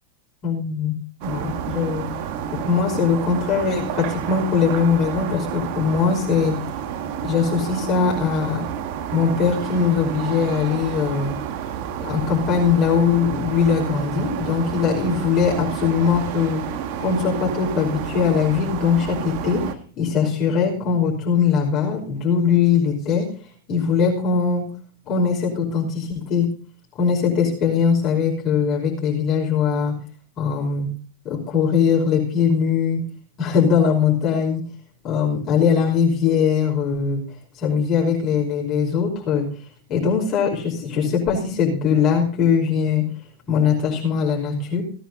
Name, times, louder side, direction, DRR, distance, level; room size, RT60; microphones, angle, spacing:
voice 1, 0.4-0.9 1.2-2.1 2.5-6.6 7.2-8.7 9.1-11.4 12.0-16.6 17.0-19.6 20.0-23.3 23.7-24.7 25.1-26.5 27.0-30.0 30.4-30.9 31.2-33.0 33.4-34.6 35.0-37.2 37.6-39.5 39.9-43.1 43.5-44.8, left 6 dB, 40° left, -2 dB, 5.4 m, -21 dB
sound 1, 1.2-19.7, right 9 dB, 55° right, 1.7 m, -30 dB
17.5 x 10.0 x 4.1 m, 0.41 s
hypercardioid pair, 115°, 0 cm